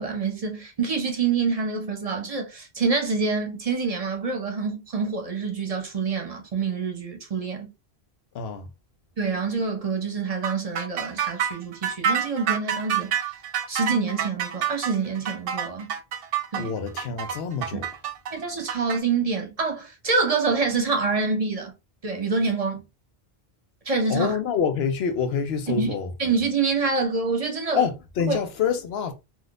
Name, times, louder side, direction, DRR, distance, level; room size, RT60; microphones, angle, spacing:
voice 1, 0.0-7.7 9.2-13.3 13.7-15.9 16.5-16.7 18.3-21.7 22.0-22.8 23.9-24.4 25.7-25.9 26.2-27.8 28.3-28.4, right 4 dB, 40° right, 0.8 m, -26 dB
voice 2, 8.3-8.7 16.6-17.9 24.1-26.1 27.8-29.1, left 6 dB, 80° left, 0.9 m, -26 dB
sound 1, 10.4-19.0, right 8 dB, 70° right, 0.7 m, -28 dB
3.6 x 2.5 x 2.4 m
omnidirectional pair, 1.0 m